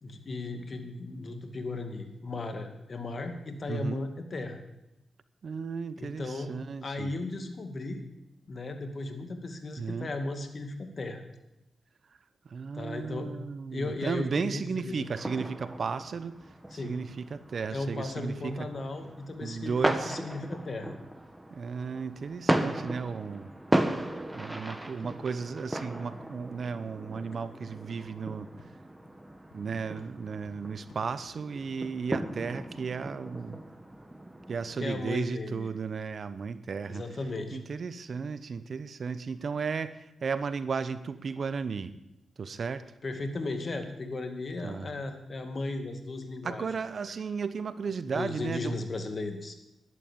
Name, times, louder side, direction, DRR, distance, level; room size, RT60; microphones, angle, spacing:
voice 1, 0.0-4.6 6.0-6.6 6.8-8.0 8.5-11.2 12.7-13.4 13.7-15.1 16.7-17.0 17.7-19.8 20.0-21.0 34.8-35.7 36.9-37.6 43.0-46.7 48.1-49.5, left 2 dB, 50° left, 6 dB, 2.3 m, -36 dB
voice 2, 3.7-4.0 5.4-7.1 9.8-10.1 12.5-16.3 16.7-18.7 19.4-20.2 21.5-23.5 24.3-28.5 29.5-33.6 34.5-37.0 37.5-41.9 42.4-42.8 44.6-44.9 46.4-48.7, right 5 dB, 60° right, 13 dB, 0.9 m, -34 dB
sound 1, 15.1-34.9, right 1 dB, 15° right, 1.7 m, -36 dB
sound 2, 20.7-20.8 21.2-21.3 21.7-21.9 22.2-22.3 22.7-22.8 23.2-23.4 23.7-23.8 24.2-24.3 24.7-24.8 25.2-25.5 26.1-26.2 26.6-26.8 27.1-27.2 27.6-27.7 28.1-28.2 28.6-28.7 29.0-29.2 29.5-29.6 29.9-30.1 30.4-30.5 30.9-31.0, left 5 dB, 80° left, 2.1 m, -60 dB
11.5 x 11.0 x 7.0 m, 0.89 s
supercardioid pair, 50°, 0 cm